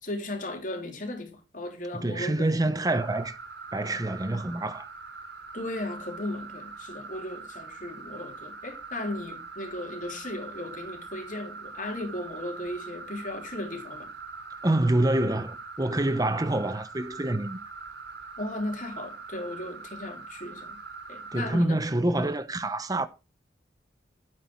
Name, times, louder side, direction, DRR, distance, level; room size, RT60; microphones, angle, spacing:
voice 1, 0.0-2.8 5.5-14.1 18.4-20.8 21.1-21.8, left 1 dB, 45° left, 3.7 m, -36 dB
voice 2, 1.9-3.4 3.7-4.9 14.6-17.6 21.3-23.1, right 1 dB, 20° right, 0.8 m, -26 dB
sound 1, 2.9-21.6, right 4 dB, 70° right, 5.8 m, -43 dB
12.5 x 9.2 x 4.5 m
head